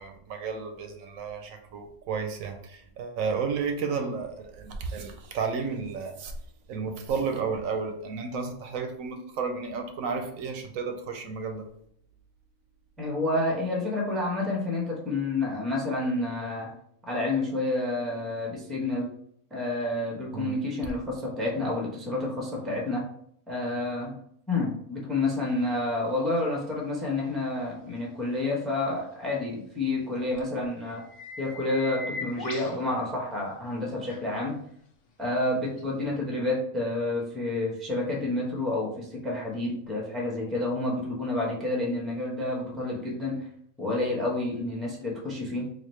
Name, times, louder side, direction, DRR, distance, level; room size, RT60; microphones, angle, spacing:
voice 1, 0.0-6.3 6.7-11.7 20.3-20.5, right 5 dB, 75° right, 5 dB, 1.0 m, -32 dB
voice 2, 13.0-16.7 17.1-19.1 19.5-23.1 23.5-24.2 24.5-31.1 31.4-34.6 35.2-43.5 43.8-45.7, left 2 dB, ahead, -2 dB, 0.6 m, -29 dB
sound 1, 26.4-26.5 30.4-30.5 30.9-32.8 34.1-34.2 35.8-35.9, left 3 dB, 65° left, 1.0 m, -39 dB
4.0 x 2.4 x 3.1 m, 0.68 s
omnidirectional pair, 1.4 m